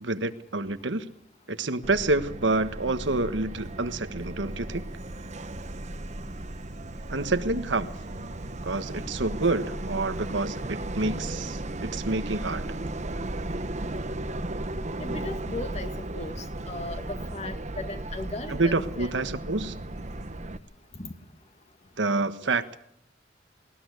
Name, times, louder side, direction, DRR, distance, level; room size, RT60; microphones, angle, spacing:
voice 1, 0.0-1.0 1.5-4.8 7.1-7.9 8.6-12.7 18.5-19.7 22.0-22.8, right 2 dB, 75° right, 10 dB, 1.5 m, -28 dB
Subway metro underground, 1.8-20.6, right 1 dB, 40° right, 1.1 m, -35 dB
voice 2, 15.0-19.1 21.0-21.1, left 2 dB, 35° left, 7 dB, 2.3 m, -37 dB
20.0 x 19.5 x 8.2 m, 0.69 s
head